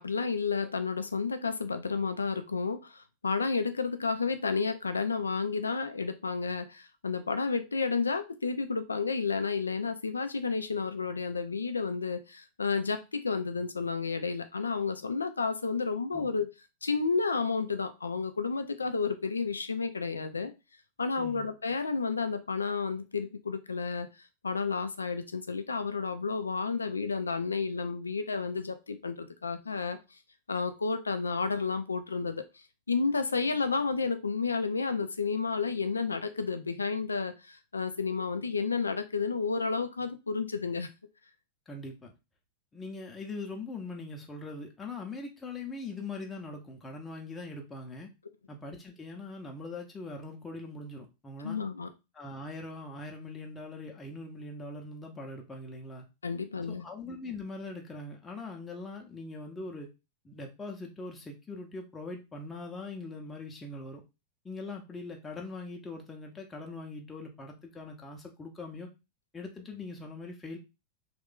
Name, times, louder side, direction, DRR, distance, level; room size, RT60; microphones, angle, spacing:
voice 1, 0.0-16.5 16.8-20.5 21.0-24.1 24.4-30.0 30.5-32.4 32.9-40.9 51.4-51.9 56.2-56.8, left 4 dB, 75° left, 0.4 m, -31 dB
voice 2, 21.2-21.5 41.7-42.1 42.7-48.1 48.5-51.6 52.1-56.1 56.7-59.9 60.2-64.0 64.4-68.9 69.3-70.6, left 3 dB, 15° left, 0.6 m, -41 dB
3.2 x 2.3 x 3.5 m
figure-of-eight pair, 90°, 0 cm